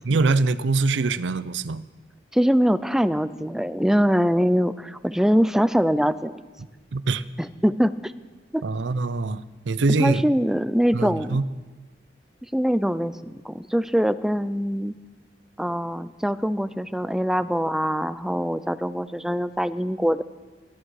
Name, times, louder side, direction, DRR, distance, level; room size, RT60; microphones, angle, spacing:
voice 1, 0.0-1.8 6.9-7.2 8.6-10.2 10.9-11.4, right 3 dB, 90° right, 0.6 m, -23 dB
voice 2, 2.3-6.4 7.4-8.1 8.5-8.6 10.0-11.4 12.5-15.0 15.6-20.2, equal, 5° right, 0.4 m, -23 dB
20.5 x 13.0 x 4.8 m
head